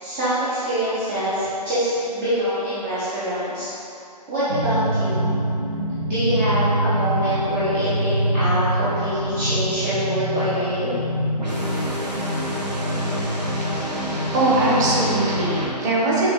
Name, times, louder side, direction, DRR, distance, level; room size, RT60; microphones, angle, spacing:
voice 1, 0.0-3.7 4.3-5.3 6.0-10.9, equal, 10° right, -14 dB, 0.4 m, -24 dB
sound 1, 4.5-15.7, equal, 80° right, 1.1 m, -25 dB
voice 2, 14.3-16.3, right 2 dB, 25° right, -6 dB, 0.8 m, -20 dB
6.1 x 2.4 x 3.6 m, 2.8 s
figure-of-eight pair, 140°, 21 cm